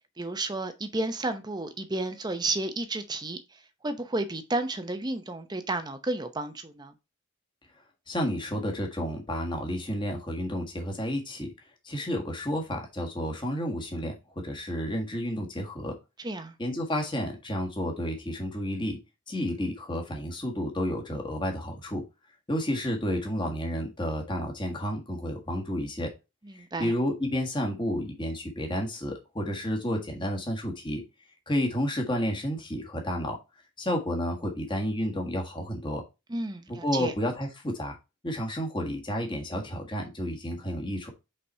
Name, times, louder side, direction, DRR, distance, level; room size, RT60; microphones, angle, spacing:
voice 1, 0.2-3.4 3.8-6.9 16.2-16.5 26.5-26.9 36.3-37.1, right 2 dB, 20° right, 0.7 m, -32 dB
voice 2, 8.1-11.5 11.8-14.1 14.4-15.9 16.6-19.0 19.3-22.0 22.5-26.1 26.5-31.0 31.5-33.4 33.8-36.0 36.7-38.0 38.2-41.1, equal, 20° left, 1.5 m, -31 dB
5.5 x 4.2 x 4.2 m
head